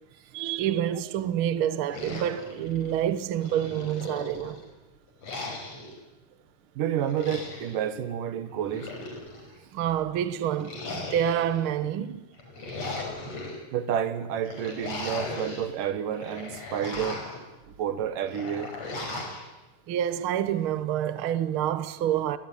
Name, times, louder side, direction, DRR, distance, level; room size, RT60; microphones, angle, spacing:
voice 1, 0.3-4.6 9.7-12.3 19.9-22.4, right 10 dB, 60° right, 1.4 m, -28 dB
sound 1, 1.9-3.0 3.4-4.7 5.2-6.0 7.0-7.8 8.5-9.5 10.6-11.6 12.3-13.6 14.4-15.7 16.1-17.4 18.3-19.4, left 2 dB, 50° left, 6.2 m, -37 dB
voice 2, 6.8-8.9 13.7-17.2 17.8-18.7, right 9 dB, 80° right, 3.2 m, -30 dB
29.5 x 20.0 x 9.8 m
omnidirectional pair, 3.8 m